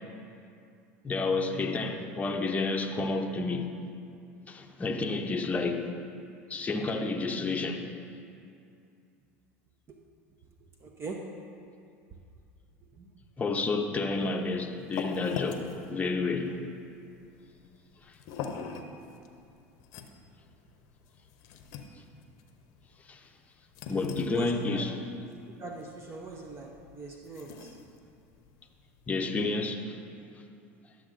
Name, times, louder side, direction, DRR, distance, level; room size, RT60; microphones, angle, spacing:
voice 1, 1.0-3.7 4.5-5.9 6.5-7.8 13.4-16.6 23.1-23.2 23.9-25.0 29.1-30.0, left 3 dB, 20° left, 3 dB, 0.7 m, -30 dB
voice 2, 10.8-11.2 13.0-13.1 24.2-24.9 25.6-27.7, right 3 dB, 35° right, 1 dB, 0.7 m, -41 dB
sound 1, 14.2-29.2, left 5 dB, 60° left, 0.7 m, -44 dB
11.5 x 7.1 x 2.5 m, 2.4 s
hypercardioid pair, 95°, 7 cm